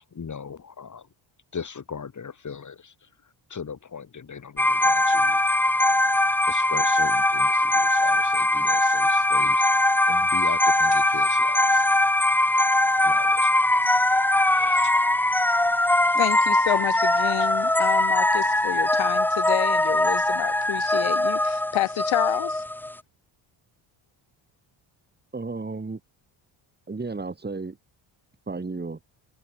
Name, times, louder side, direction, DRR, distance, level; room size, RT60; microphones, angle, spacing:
voice 1, 0.1-1.1 1.5-2.9 3.5-5.4 6.5-9.7 10.1-11.9 13.0-13.5 14.4-15.0, left 6 dB, 35° left, 5.0 m, -38 dB
sound 1, 4.6-22.9, left 1 dB, 5° left, 0.6 m, -21 dB
voice 2, 16.1-22.6, left 14 dB, 75° left, 1.6 m, -29 dB
voice 3, 25.3-26.0 26.9-27.8 28.5-29.0, right 3 dB, 20° right, 5.6 m, -33 dB
cardioid pair, 110°, 48 cm